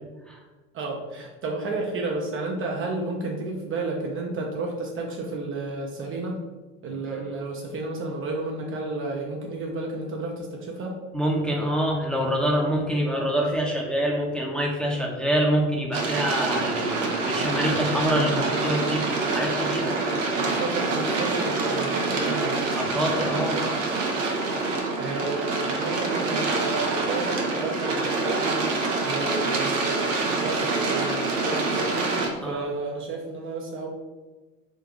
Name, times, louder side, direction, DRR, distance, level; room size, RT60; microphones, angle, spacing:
voice 1, 0.7-6.4 6.8-11.0 18.1-18.6 20.0-22.6 25.0-29.9 30.2-32.1 32.4-33.9, right 3 dB, 35° right, 0 dB, 0.6 m, -32 dB
voice 2, 11.1-16.9 17.2-19.1 19.3-19.9 22.8-23.6 32.4-32.7, equal, ahead, -2 dB, 0.7 m, -25 dB
sound 1, 15.9-32.3, right 3 dB, 70° right, 0.8 m, -26 dB
3.8 x 2.7 x 3.6 m, 1.2 s
figure-of-eight pair, 65°, 39 cm